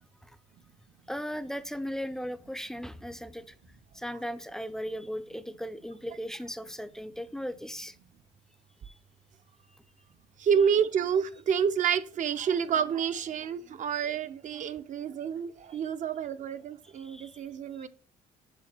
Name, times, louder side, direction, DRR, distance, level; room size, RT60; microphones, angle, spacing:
voice 1, 1.1-3.5 3.9-7.9 8.8-8.9 17.0-17.4 17.8-17.9, equal, 5° left, 0.4 m, -37 dB
voice 2, 10.4-17.9, right 7 dB, 50° right, 0.5 m, -29 dB
6.9 x 3.3 x 5.8 m
cardioid pair, 110°, 17 cm